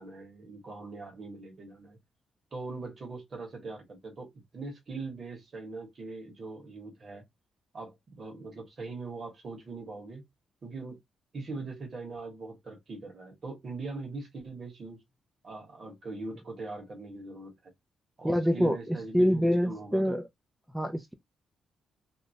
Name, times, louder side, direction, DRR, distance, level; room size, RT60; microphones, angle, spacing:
voice 1, 0.0-2.0 2.5-7.2 7.7-10.2 10.6-11.0 11.3-15.0 15.4-17.7 18.2-20.2, right 3 dB, 45° right, 1.4 m, -41 dB
voice 2, 18.2-20.3 20.7-21.1, equal, 5° right, 0.4 m, -26 dB
2.8 x 2.1 x 2.7 m
cardioid pair, 105°, 0 cm